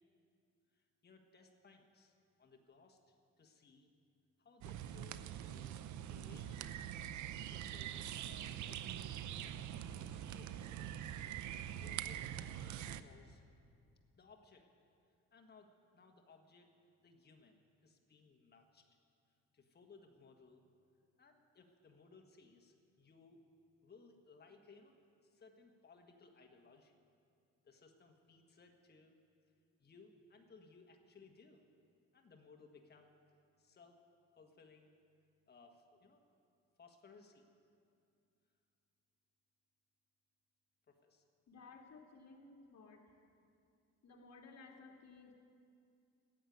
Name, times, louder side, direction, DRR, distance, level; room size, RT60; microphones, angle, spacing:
voice 1, 0.7-3.9 4.4-5.7 6.1-6.6 7.5-9.3 9.6-11.0 11.7-13.4 14.1-14.7 15.3-16.7 17.0-18.9 19.5-20.6 21.2-23.4 23.8-24.9 25.2-26.9 27.6-29.2 29.8-31.6 32.1-33.2 33.6-34.0 34.4-35.0 35.5-36.2 36.8-37.4 40.9-41.2, left 4 dB, 35° left, 3 dB, 1.5 m, -63 dB
sound 1, 4.6-13.0, right 10 dB, 75° right, 0.6 m, -44 dB
voice 2, 41.5-43.1 44.0-45.3, left 4 dB, 60° left, 1 dB, 2.0 m, -57 dB
13.5 x 8.2 x 9.3 m, 2.4 s
cardioid pair, 90°, 30 cm